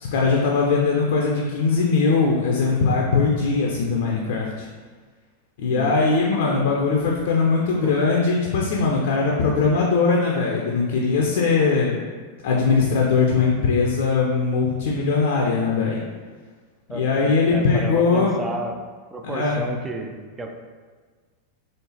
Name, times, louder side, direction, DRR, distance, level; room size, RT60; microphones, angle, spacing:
voice 1, 0.0-4.7 5.6-12.0 12.4-16.0 16.9-18.4 19.2-19.6, left 4 dB, 55° left, -2 dB, 0.5 m, -20 dB
voice 2, 16.9-18.8 19.1-20.5, right 2 dB, 15° right, 3 dB, 0.4 m, -31 dB
4.4 x 3.1 x 2.8 m, 1.5 s
figure-of-eight pair, 90°, 0 cm